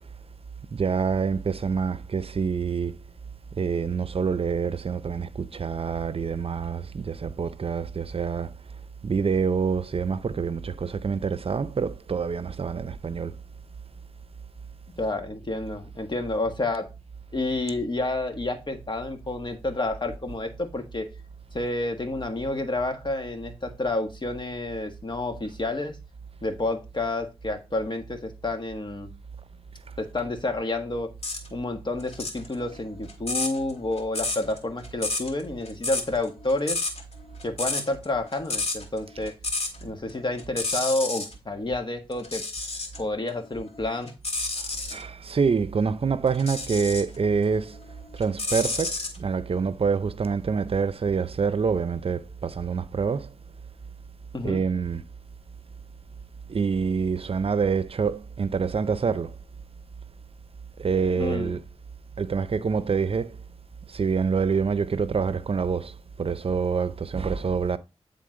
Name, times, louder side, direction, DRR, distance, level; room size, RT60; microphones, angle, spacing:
voice 1, 0.7-2.9 3.6-8.5 9.0-13.3 44.9-47.8 48.1-53.3 54.4-55.0 56.5-59.3 60.8-61.6 62.2-63.4 63.9-67.8, right 5 dB, 65° right, 0.5 m, -26 dB
voice 2, 15.0-16.9 17.3-21.1 21.5-26.0 26.4-29.1 30.0-31.1 31.5-36.8 37.4-39.3 39.8-42.4 43.0-44.1 54.3-54.6 61.1-61.5, left 2 dB, 45° left, 1.5 m, -29 dB
sound 1, 31.2-31.5 32.0-39.8 40.1-41.3 42.1-43.0 43.5-45.0 46.3-47.2 47.6-49.2, left 3 dB, 75° left, 1.8 m, -30 dB
9.2 x 3.8 x 3.7 m
cardioid pair, 50°, 11 cm